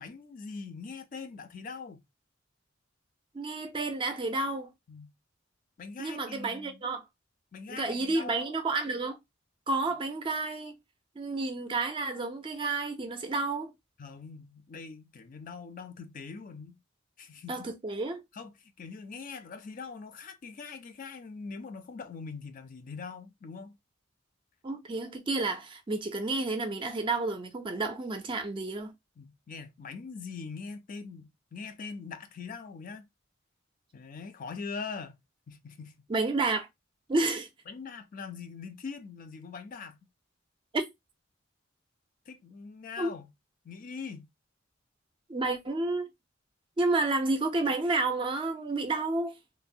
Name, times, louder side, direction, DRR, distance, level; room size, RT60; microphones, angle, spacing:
voice 1, 0.0-2.0 4.9-5.1 5.8-6.8 7.5-8.5 14.0-16.7 17.2-17.7 18.3-23.8 29.2-33.1 33.9-35.2 35.5-36.0 37.7-40.0 42.3-43.3 43.6-44.3, left 5 dB, 45° left, 0.4 m, -42 dB
voice 2, 3.3-4.7 6.0-7.0 7.7-9.2 9.7-10.7 11.2-13.7 17.5-18.2 24.6-28.9 36.1-36.7 37.1-37.5 40.7-40.8 43.0-43.1 45.3-46.1 46.8-49.3, right 3 dB, 25° right, 0.4 m, -30 dB
3.0 x 2.0 x 2.6 m
head